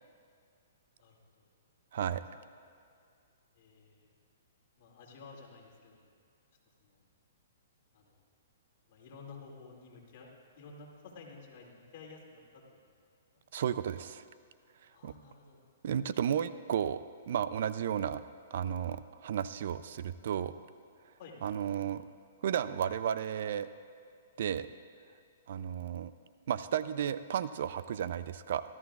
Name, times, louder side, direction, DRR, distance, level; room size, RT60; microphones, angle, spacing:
voice 1, 1.0-1.5 2.1-2.5 3.5-4.1 4.8-6.0 6.8-7.0 7.9-8.2 8.9-10.3 10.6-13.0 14.9-15.6 21.2-21.4, left 4 dB, 50° left, -2 dB, 2.3 m, -53 dB
voice 2, 1.9-2.2 13.5-14.2 15.0-15.1 15.8-17.0 17.3-18.2 18.5-20.5 21.4-22.0 22.4-23.7 24.4-24.7 25.5-26.1 26.5-28.6, right 9 dB, 60° right, 14 dB, 0.4 m, -33 dB
17.5 x 13.5 x 2.4 m, 2.3 s
hypercardioid pair, 145°, 0 cm